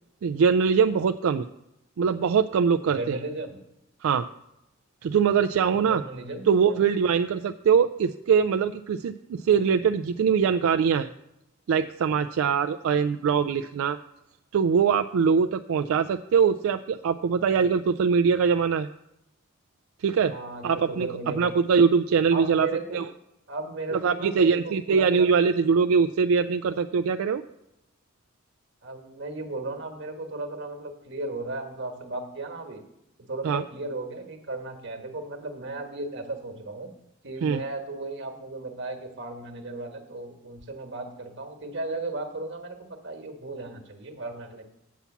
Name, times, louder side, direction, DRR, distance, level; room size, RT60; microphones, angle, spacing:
voice 1, 0.2-1.5 2.0-3.2 4.0-4.3 5.0-6.0 6.5-11.1 11.7-14.0 14.5-18.9 20.0-20.3 20.6-21.1 21.4-22.7 22.9-23.0 23.9-27.4 33.4-33.6 37.4-37.6, right 6 dB, 85° right, 8 dB, 0.3 m, -22 dB
voice 2, 2.9-3.6 5.6-6.8 20.3-21.6 22.3-23.0 23.5-25.3 28.8-32.8 33.2-36.9 37.2-44.6, right 2 dB, 60° right, 4 dB, 1.3 m, -35 dB
8.3 x 5.7 x 7.0 m, 0.85 s
head